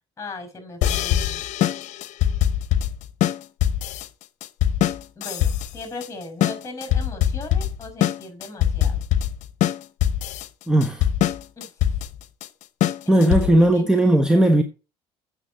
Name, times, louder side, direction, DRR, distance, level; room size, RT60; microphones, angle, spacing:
voice 1, 0.2-1.4 5.2-9.1 11.6-11.7 13.0-13.9, left 2 dB, 20° left, 5.9 m, -38 dB
sound 1, 0.8-13.7, left 11 dB, 65° left, 1.0 m, -23 dB
voice 2, 10.7-11.0 13.1-14.6, right 1 dB, 5° right, 1.3 m, -17 dB
8.3 x 6.9 x 7.8 m
supercardioid pair, 85°, 14 cm